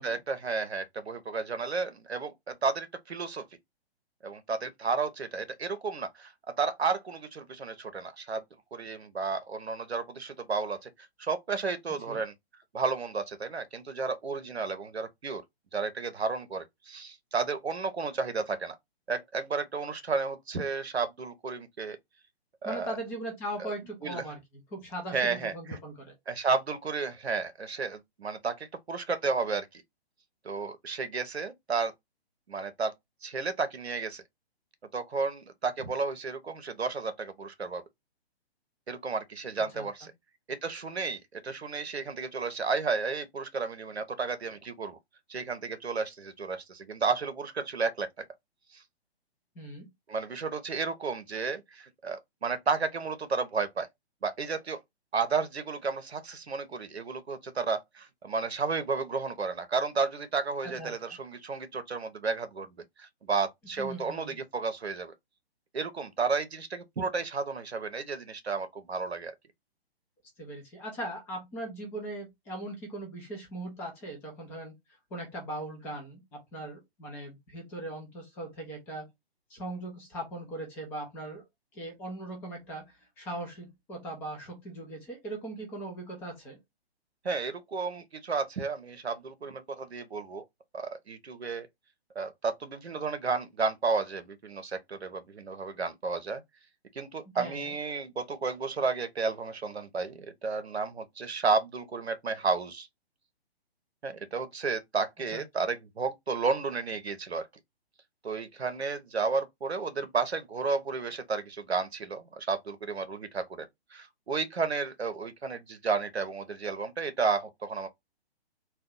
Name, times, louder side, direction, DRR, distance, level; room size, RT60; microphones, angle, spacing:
voice 1, 0.0-3.4 4.2-6.3 6.6-8.4 8.7-10.9 11.2-12.3 12.7-15.4 15.7-18.8 19.1-22.0 22.6-22.9 23.6-23.7 24.0-24.2 25.1-25.8 26.3-29.8 30.4-31.9 32.5-32.9 33.2-34.2 34.9-37.8 38.9-40.1 40.5-45.0 45.3-48.1 48.7-48.8 50.1-53.9 54.2-54.8 55.1-65.1 65.7-69.3 87.2-90.4 90.7-91.7 92.2-96.4 96.9-102.9 104.0-107.5 108.2-117.9, right 4 dB, 80° right, 0.7 m, -32 dB
voice 2, 22.6-24.4 24.7-26.1 39.6-39.8 49.6-49.9 60.8-60.9 63.8-64.4 70.4-74.7 75.1-79.0 79.5-81.4 81.7-86.6 97.3-97.7 105.3-105.4, right 1 dB, 5° left, 0.5 m, -39 dB
2.6 x 2.2 x 3.6 m
figure-of-eight pair, 130°, 32 cm